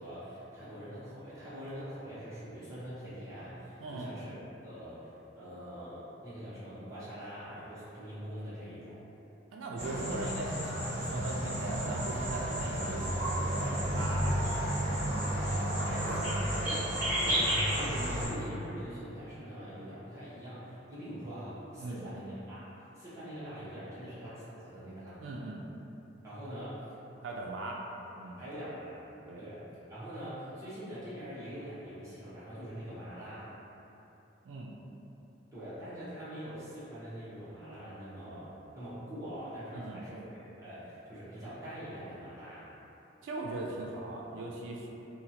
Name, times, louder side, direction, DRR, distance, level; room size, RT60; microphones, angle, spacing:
voice 1, 0.0-4.3 4.6-9.0 14.3-14.5 15.3-15.5 15.9-16.9 17.2-22.7 22.9-25.2 26.2-26.8 28.4-29.0 29.4-29.6 29.9-33.5 35.5-42.7, equal, 15° right, -13 dB, 0.9 m, -43 dB
voice 2, 3.8-4.1 9.5-15.0 15.5-16.4 17.5-17.6 21.8-22.0 25.2-25.7 27.2-27.8 28.2-28.4 29.3-29.4 34.4-34.7 39.7-40.0 43.2-44.9, right 2 dB, 85° right, -2 dB, 0.3 m, -40 dB
sound 1, 9.8-18.3, equal, 45° right, 1.4 m, -31 dB
2.8 x 2.4 x 2.7 m, 3.0 s
head